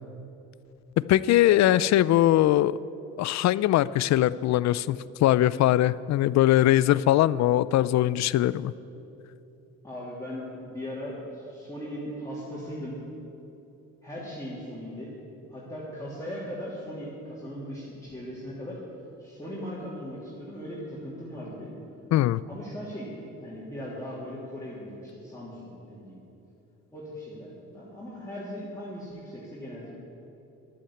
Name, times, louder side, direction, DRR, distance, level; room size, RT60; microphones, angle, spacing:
voice 1, 1.0-2.7 3.2-8.7 22.1-22.4, left 13 dB, 65° left, 18 dB, 0.4 m, -21 dB
voice 2, 9.8-13.0 14.0-15.1 15.5-18.8 19.2-21.7 22.5-23.1 23.4-26.2 26.9-29.9, equal, 10° left, -8 dB, 3.0 m, -38 dB
11.5 x 8.8 x 8.7 m, 2.9 s
cardioid pair, 90°, 30 cm